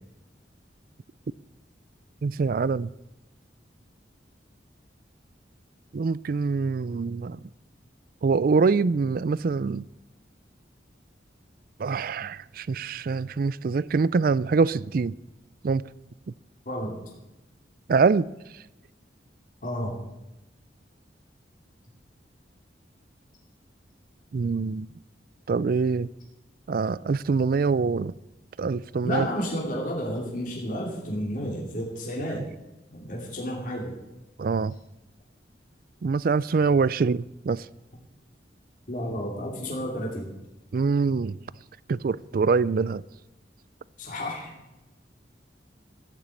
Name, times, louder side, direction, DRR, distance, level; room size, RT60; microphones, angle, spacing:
voice 1, 2.2-2.9 5.9-7.4 8.2-9.8 11.8-15.1 15.6-15.8 17.9-18.2 24.3-24.9 25.5-26.1 26.7-28.1 28.6-29.3 34.4-34.7 36.0-37.6 40.7-41.4 41.9-43.0, right 4 dB, 50° right, 0.4 m, -24 dB
voice 2, 16.7-17.0 19.6-20.0 29.0-32.4 32.9-34.0 38.9-40.3 44.0-44.6, equal, 45° left, 2.7 m, -31 dB
14.0 x 7.3 x 8.3 m
head